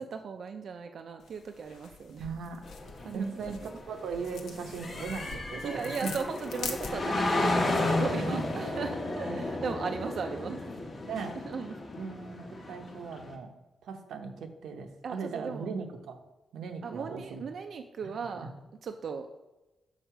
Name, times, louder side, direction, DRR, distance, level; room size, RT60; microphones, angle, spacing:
voice 1, 0.0-2.3 3.0-3.8 4.9-5.0 5.5-10.6 11.4-11.7 12.6-12.7 15.0-15.7 16.8-18.5 18.8-19.3, right 5 dB, 50° right, 6 dB, 0.3 m, -37 dB
sound 1, 1.2-7.3, left 5 dB, 90° left, 0.7 m, -44 dB
voice 2, 2.2-2.6 3.1-3.6 3.9-6.1 8.1-8.7 9.3-9.4 11.1-11.4 12.0-13.5 13.8-16.2 16.5-17.4 18.0-18.1 18.4-18.5, right 5 dB, 90° right, 5 dB, 0.7 m, -38 dB
sound 2, 2.6-13.3, left 2 dB, 35° left, 1.0 m, -33 dB
6.5 x 3.9 x 4.5 m, 1.1 s
wide cardioid pair, 155°, 0 cm